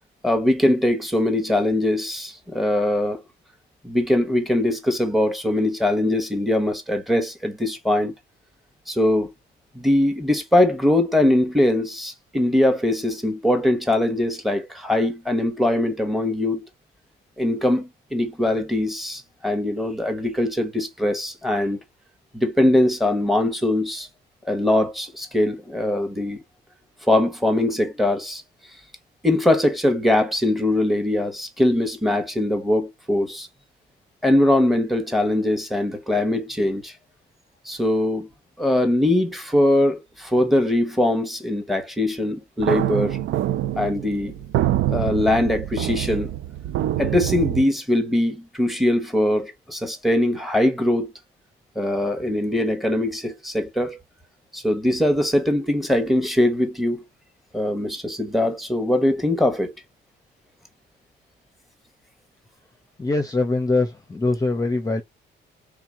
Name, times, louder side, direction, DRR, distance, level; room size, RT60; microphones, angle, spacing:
voice 1, 0.2-3.2 3.8-8.1 8.9-9.3 9.7-16.6 17.4-21.8 22.3-24.1 24.5-26.4 27.1-28.4 29.2-33.5 34.2-36.9 37.6-38.3 38.6-43.2 43.8-44.3 44.9-46.3 47.0-51.1 51.7-54.0 54.5-57.0 57.5-59.7, left 1 dB, ahead, 1.3 m, -21 dB
sound 1, 42.6-47.6, right 13 dB, 75° right, 0.5 m, -25 dB
voice 2, 63.0-65.0, left 3 dB, 15° left, 0.8 m, -23 dB
3.7 x 2.8 x 3.6 m
cardioid pair, 90°, 20 cm